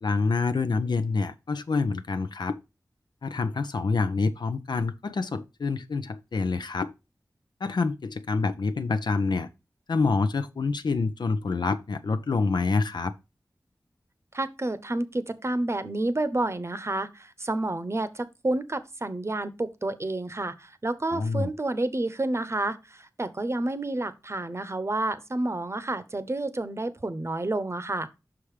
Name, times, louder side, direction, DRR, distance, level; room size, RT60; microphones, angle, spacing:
voice 1, 0.0-2.6 3.2-6.9 7.6-9.5 9.9-13.1 21.1-21.5, left 4 dB, 80° left, 0.7 m, -27 dB
voice 2, 14.3-28.1, right 2 dB, 40° right, 0.8 m, -30 dB
5.9 x 4.9 x 4.9 m
wide cardioid pair, 50°, 7 cm